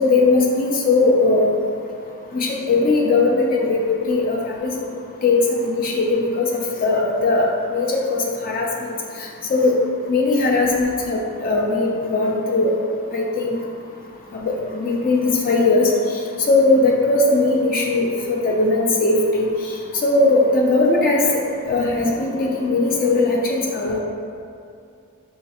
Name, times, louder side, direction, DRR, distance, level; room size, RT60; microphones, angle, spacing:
voice 1, 0.0-1.5 2.5-4.7 5.2-7.5 7.7-8.9 9.5-9.7 10.1-12.7 13.1-13.6 14.4-15.9 16.5-19.5 20.0-21.2 21.7-24.0, left 3 dB, 40° left, -1 dB, 0.5 m, -19 dB
4.2 x 2.4 x 4.2 m, 2.4 s
head